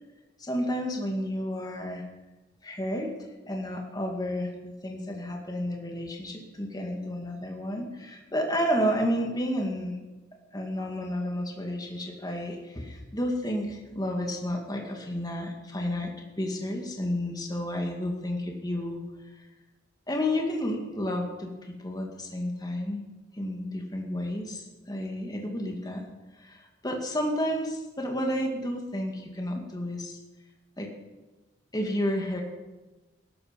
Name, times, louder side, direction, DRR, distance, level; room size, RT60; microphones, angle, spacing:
voice 1, 0.4-2.0 2.6-3.1 3.5-10.0 10.5-16.1 16.4-19.0 20.1-23.0 23.3-26.0 26.4-30.2 30.8-30.9 31.7-32.4, equal, 20° left, 1 dB, 2.3 m, -31 dB
17.5 x 13.0 x 5.3 m, 1.1 s
head